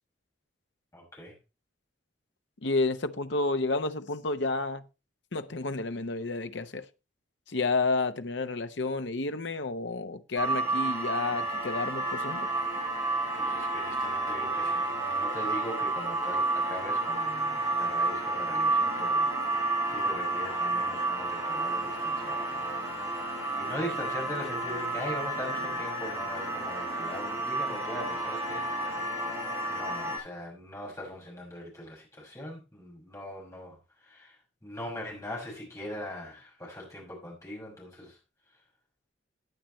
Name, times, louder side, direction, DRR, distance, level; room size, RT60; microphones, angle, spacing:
voice 1, 0.9-1.3 13.2-22.6 23.6-29.4 29.7-33.8 34.1-34.4 34.6-38.2, equal, 15° left, 5.8 m, -41 dB
voice 2, 2.6-4.8 5.3-6.9 7.5-12.5, left 3 dB, 65° left, 0.9 m, -30 dB
sound 1, 10.4-30.2, right 2 dB, 20° right, 6.9 m, -30 dB
16.0 x 9.0 x 3.1 m
head